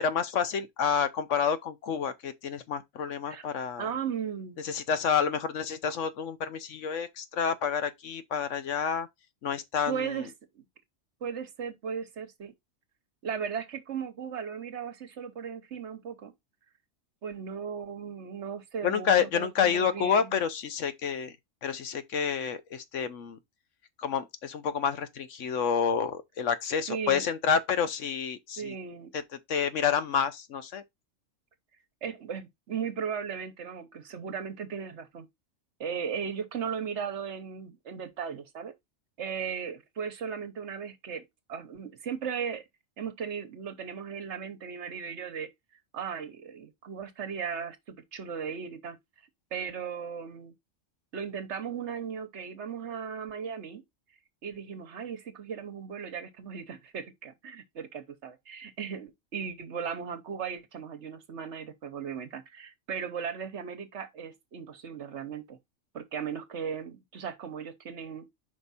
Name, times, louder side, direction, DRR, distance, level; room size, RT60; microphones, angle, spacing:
voice 1, 0.0-3.9 4.6-9.1 9.4-10.3 18.8-21.3 21.6-23.4 24.0-28.7 29.1-29.2 29.5-30.8, left 7 dB, 70° left, 1.1 m, -29 dB
voice 2, 3.8-4.6 9.9-10.3 10.5-10.6 11.2-12.5 13.2-16.3 17.2-20.3 26.9-27.3 28.6-29.1 32.0-35.3 35.8-38.7 39.2-42.6 43.0-45.5 45.9-49.0 49.5-50.5 51.1-53.8 54.4-65.6 65.9-68.3, right 7 dB, 65° right, 1.2 m, -37 dB
5.2 x 4.6 x 4.0 m
omnidirectional pair, 1.3 m